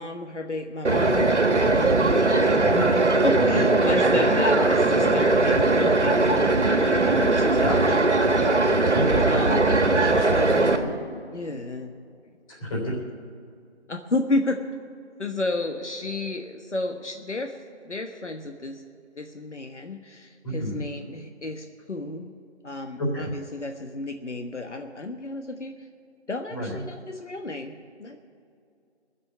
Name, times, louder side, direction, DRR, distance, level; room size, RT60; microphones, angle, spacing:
voice 1, 0.0-8.2 9.2-9.6 11.3-11.9 13.9-14.6 15.2-17.6 17.8-18.8 19.2-22.4 22.6-25.7 26.3-28.2, left 2 dB, 85° left, 4 dB, 1.3 m, -32 dB
sound 1, 0.8-10.8, right 2 dB, 80° right, 1.6 m, -20 dB
voice 2, 7.6-8.1 8.9-10.9 12.5-13.0 20.4-20.8 23.0-23.3 26.5-26.8, equal, 30° left, -2 dB, 3.4 m, -31 dB
20.0 x 7.5 x 8.1 m, 2.4 s
figure-of-eight pair, 165°, 35 cm